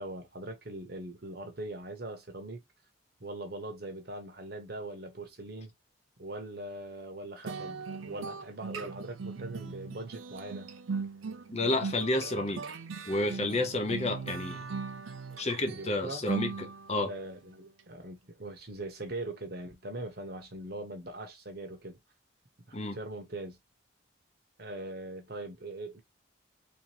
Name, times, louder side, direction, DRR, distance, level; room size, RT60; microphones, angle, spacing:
voice 1, 0.0-2.6 3.2-5.7 6.2-10.7 15.7-16.2 17.0-22.0 22.7-23.6 24.6-26.0, right 2 dB, 55° right, 1.0 m, -41 dB
sound 1, 7.5-17.1, right 5 dB, 90° right, 0.5 m, -39 dB
voice 2, 11.5-12.6 13.1-14.6 15.4-17.1 22.7-23.0, left 2 dB, 35° left, 0.7 m, -30 dB
3.5 x 2.9 x 3.3 m
head